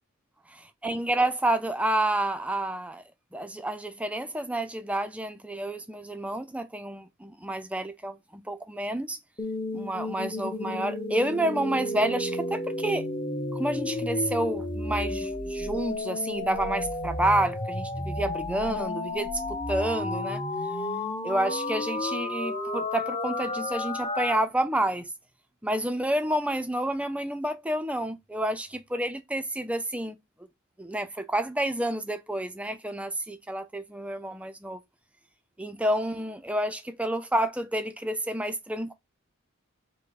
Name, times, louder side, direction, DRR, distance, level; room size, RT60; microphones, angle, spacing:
voice 1, 0.5-3.0 3.3-9.2 9.7-13.1 13.5-20.4 21.2-25.1 25.6-30.2 30.8-34.8 35.6-38.9, right 1 dB, 5° right, 0.4 m, -29 dB
sound 1, 9.4-24.4, left 2 dB, 25° left, 0.8 m, -32 dB
4.6 x 2.1 x 4.6 m
head